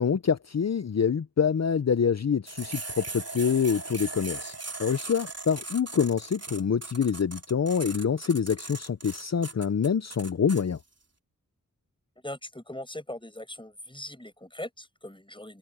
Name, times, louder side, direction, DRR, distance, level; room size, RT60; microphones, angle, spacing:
voice 1, 0.0-4.5 4.8-10.8, left 6 dB, 50° left, 0.6 m, -26 dB
sound 1, 2.5-10.6, right 3 dB, 50° right, 3.3 m, -39 dB
voice 2, 12.2-15.6, left 1 dB, 15° left, 5.9 m, -40 dB
open air
wide cardioid pair, 50°, 33 cm